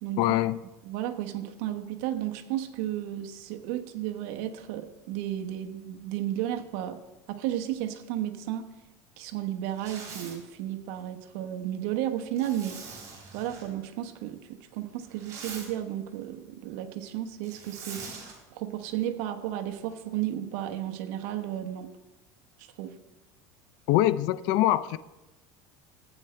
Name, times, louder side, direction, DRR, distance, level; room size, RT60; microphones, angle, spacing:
voice 1, 0.2-0.6 23.9-25.0, left 14 dB, 60° left, 15 dB, 0.4 m, -23 dB
voice 2, 0.8-7.0 7.3-8.7 9.2-12.8 13.3-18.0 18.5-21.9 22.6-23.0, right 12 dB, 70° right, 6 dB, 1.1 m, -33 dB
Zipper (clothing), 9.7-10.4 12.4-13.7 15.0-15.7 17.4-18.3, right 5 dB, 35° right, 4.4 m, -43 dB
15.0 x 9.1 x 3.3 m, 1.0 s
cardioid pair, 150°, 9 cm